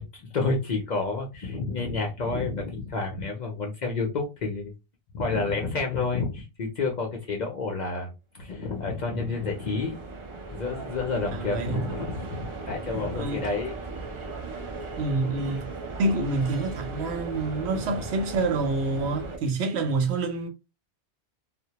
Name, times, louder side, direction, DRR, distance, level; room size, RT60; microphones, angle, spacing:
voice 1, 0.0-4.7 5.1-10.0 10.5-13.7 17.7-17.9, left 3 dB, 55° left, 0.5 m, -30 dB
sound 1, 8.5-19.4, right 3 dB, 50° right, 0.3 m, -38 dB
voice 2, 11.3-11.8 13.1-13.5 15.0-15.6 16.0-20.5, right 3 dB, 75° right, 0.8 m, -27 dB
2.1 x 2.1 x 2.8 m
omnidirectional pair, 1.1 m